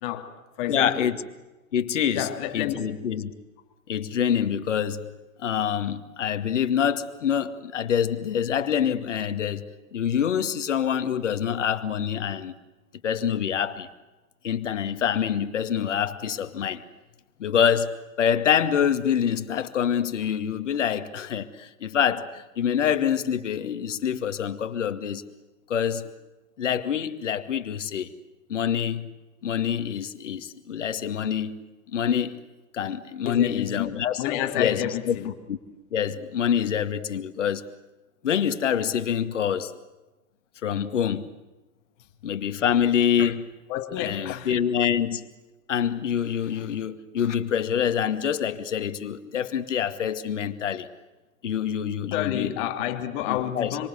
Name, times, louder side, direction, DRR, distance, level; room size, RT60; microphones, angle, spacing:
voice 1, 0.0-1.1 2.1-2.8 33.3-35.3 43.7-44.5 52.1-53.9, left 12 dB, 40° left, 2.9 m, -29 dB
voice 2, 0.7-1.2 1.7-2.3 2.5-3.3 3.9-5.1 5.4-9.6 9.9-12.5 13.0-13.9 14.4-16.8 17.4-25.2 25.7-26.1 26.6-28.1 28.5-29.1 29.4-31.6 31.9-32.4 32.7-34.2 34.6-35.6 35.9-37.6 38.2-39.7 40.6-41.3 42.2-43.5 44.0-45.3 45.7-50.9 51.4-52.7 53.3-53.8, left 8 dB, 60° left, 2.2 m, -26 dB
26.5 x 26.0 x 8.1 m
figure-of-eight pair, 105°, 40 cm